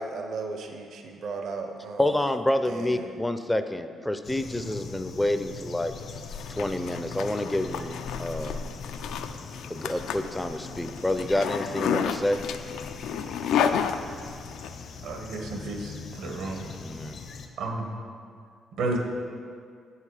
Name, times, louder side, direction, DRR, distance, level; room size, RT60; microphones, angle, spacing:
voice 1, 0.0-2.0 2.7-3.1, right 4 dB, 65° right, 4 dB, 0.6 m, -35 dB
voice 2, 2.0-5.9 6.5-8.6 9.7-12.4 16.8-17.2, left 1 dB, 10° left, 9 dB, 0.4 m, -28 dB
sound 1, 4.2-17.5, left 4 dB, 60° left, 0.7 m, -40 dB
Zipper (clothing), 6.0-14.7, left 8 dB, 85° left, 0.3 m, -31 dB
voice 3, 15.0-16.6 17.6-17.9 18.8-19.0, right 2 dB, 85° right, 2 dB, 1.2 m, -32 dB
7.9 x 5.6 x 4.8 m, 2.3 s
cardioid pair, 90°, 0 cm